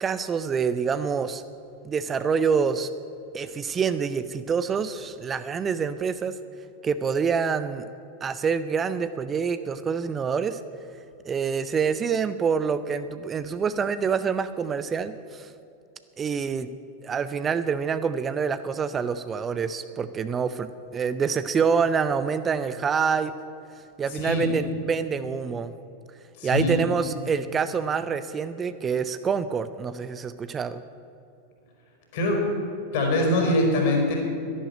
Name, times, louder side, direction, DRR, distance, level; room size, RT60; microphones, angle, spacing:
voice 1, 0.0-1.4 1.8-2.9 3.3-6.3 6.8-7.8 8.2-10.6 11.2-15.5 16.2-16.7 17.0-23.3 24.0-25.8 26.4-30.8, right 6 dB, 20° right, 12 dB, 0.5 m, -26 dB
voice 2, 24.1-24.5 26.4-26.8 32.1-32.4 32.9-34.1, left 1 dB, 50° left, 1 dB, 4.4 m, -23 dB
12.0 x 11.0 x 8.6 m, 2.8 s
figure-of-eight pair, 90°, 0 cm